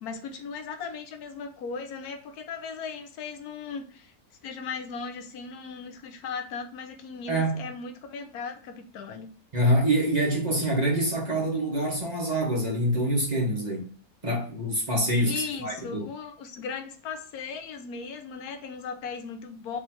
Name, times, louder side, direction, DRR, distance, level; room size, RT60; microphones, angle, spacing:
voice 1, 0.0-4.1 4.4-9.3 15.3-19.8, left 5 dB, 80° left, 1.2 m, -37 dB
voice 2, 7.3-7.7 9.5-13.9 14.2-16.0, right 1 dB, 30° right, 1.4 m, -25 dB
3.9 x 3.1 x 4.3 m
omnidirectional pair, 1.6 m